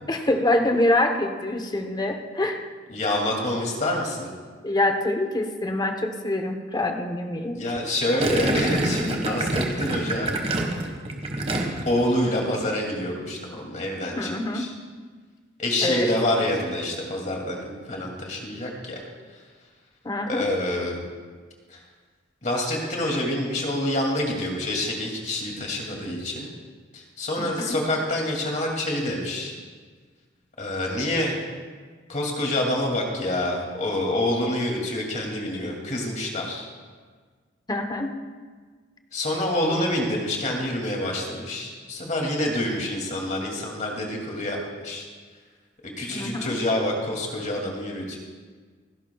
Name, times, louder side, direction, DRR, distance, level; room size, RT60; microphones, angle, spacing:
voice 1, 0.1-2.7 4.6-7.6 14.1-14.7 15.8-16.1 20.0-20.5 27.4-27.8 37.7-38.1 46.1-46.6, left 1 dB, 20° left, 5 dB, 0.9 m, -25 dB
voice 2, 2.9-4.3 7.5-10.3 11.9-14.7 15.6-19.0 20.3-21.0 21.7-21.8 22.4-26.5 26.9-29.5 30.6-31.4 32.1-36.7 39.1-45.1 45.8-48.2, left 1 dB, 40° left, 0 dB, 2.5 m, -27 dB
Gurgling, 8.2-12.0 12.3-12.7, right 1 dB, 35° right, 1.4 m, -26 dB
29.0 x 11.0 x 2.3 m, 1.5 s
head